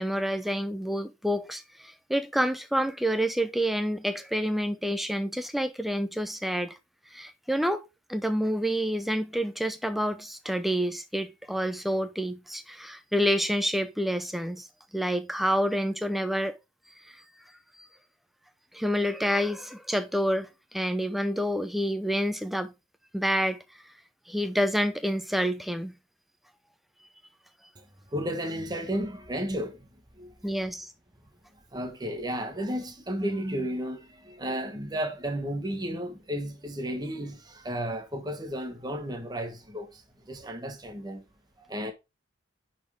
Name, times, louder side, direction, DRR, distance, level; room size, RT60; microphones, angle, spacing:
voice 1, 0.0-6.8 7.1-7.8 8.1-14.7 14.9-16.6 17.0-17.2 17.8-17.9 18.7-22.7 23.1-23.6 24.3-26.0 30.4-30.9, equal, ahead, 0.6 m, -28 dB
voice 2, 28.1-29.9 30.2-30.3 31.7-41.2 41.6-41.9, equal, 20° right, 1.2 m, -33 dB
9.7 x 4.3 x 3.4 m
head